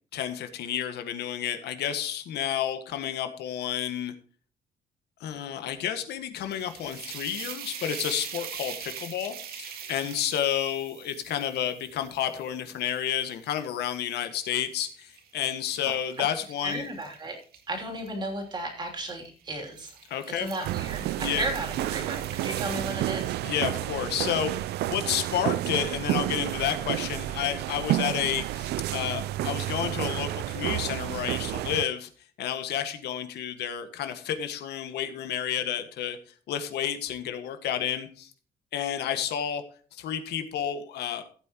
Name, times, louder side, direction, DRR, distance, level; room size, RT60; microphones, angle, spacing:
voice 1, 0.1-4.1 5.2-16.8 20.1-20.5 21.2-21.5 23.4-32.1 32.4-36.2 36.5-38.3 38.7-39.6 40.0-41.3, left 10 dB, 85° left, 8 dB, 1.6 m, -30 dB
sound 1, 6.3-13.6 14.1-18.1 19.0-19.3 19.6-23.8, right 8 dB, 70° right, 2.0 m, -43 dB
voice 2, 16.6-17.4 17.7-19.9 20.3-23.4, right 2 dB, 25° right, 3 dB, 3.0 m, -34 dB
sound 2, 20.6-31.9, right 15 dB, 90° right, 0.4 m, -30 dB
15.5 x 8.7 x 3.0 m, 0.42 s
cardioid pair, 180°, 17 cm